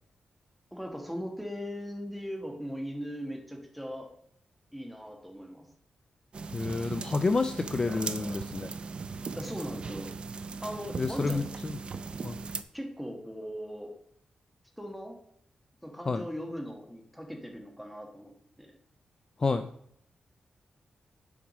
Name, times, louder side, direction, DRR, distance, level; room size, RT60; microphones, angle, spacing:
voice 1, 0.7-4.1 4.7-5.7 9.4-10.1 10.6-11.4 12.7-13.9 14.8-15.2 15.8-18.7, equal, ahead, 2 dB, 1.5 m, -39 dB
sound 1, 6.3-12.6, right 4 dB, 45° right, 0.5 m, -38 dB
voice 2, 6.5-8.7 11.0-11.8 12.2-12.4 16.1-16.2 19.4-19.7, left 3 dB, 30° left, 9 dB, 0.4 m, -29 dB
7.2 x 4.9 x 6.1 m, 0.66 s
wide cardioid pair, 140°, 3 cm